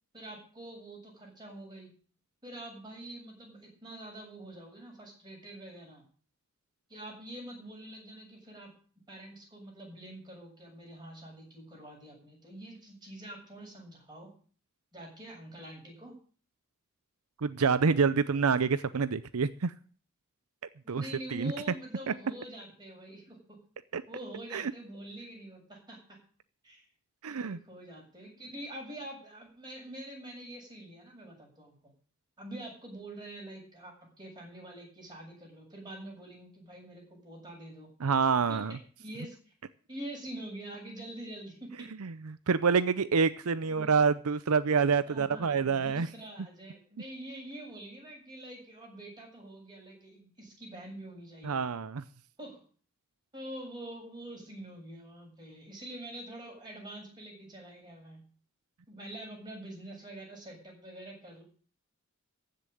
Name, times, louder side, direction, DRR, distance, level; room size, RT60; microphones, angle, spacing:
voice 1, 0.1-1.9 2.4-6.0 6.9-8.7 9.1-14.3 14.9-16.1 20.8-23.6 24.1-26.2 26.6-26.8 27.3-31.7 32.4-37.9 38.5-39.5 39.9-41.9 43.6-44.0 45.1-51.6 52.4-52.7 53.3-58.2 58.9-61.4, right 1 dB, 20° right, -1 dB, 7.4 m, -45 dB
voice 2, 17.4-19.7 20.9-21.5 22.1-22.2 23.9-24.0 24.5-24.7 27.2-27.6 38.0-38.8 42.0-46.1 51.4-52.0, right 5 dB, 85° right, 14 dB, 0.6 m, -27 dB
15.0 x 6.9 x 9.1 m, 0.43 s
head